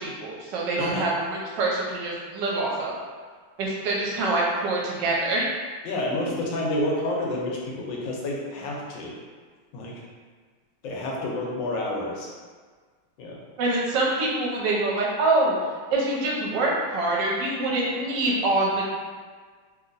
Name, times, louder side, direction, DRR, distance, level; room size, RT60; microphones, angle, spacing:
voice 1, 0.0-3.0 3.6-5.4 13.6-15.6 15.9-18.8, right 2 dB, 70° right, -3 dB, 1.2 m, -25 dB
voice 2, 5.8-9.1 9.7-9.9 10.8-12.3 13.2-13.4, left 1 dB, 70° left, -3 dB, 1.2 m, -29 dB
3.0 x 2.8 x 2.5 m, 1.5 s
omnidirectional pair, 2.3 m